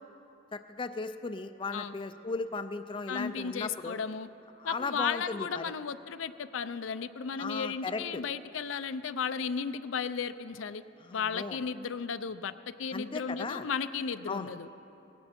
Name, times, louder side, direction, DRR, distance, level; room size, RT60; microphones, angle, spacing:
voice 1, 0.5-4.0 4.6-5.7 7.4-8.2 11.0-11.6 12.9-13.6 14.3-14.5, left 3 dB, 25° left, 9 dB, 0.4 m, -36 dB
voice 2, 3.1-4.3 4.6-10.8 11.1-14.7, left 6 dB, 80° left, 12 dB, 0.5 m, -34 dB
19.0 x 16.5 x 4.4 m, 3.0 s
head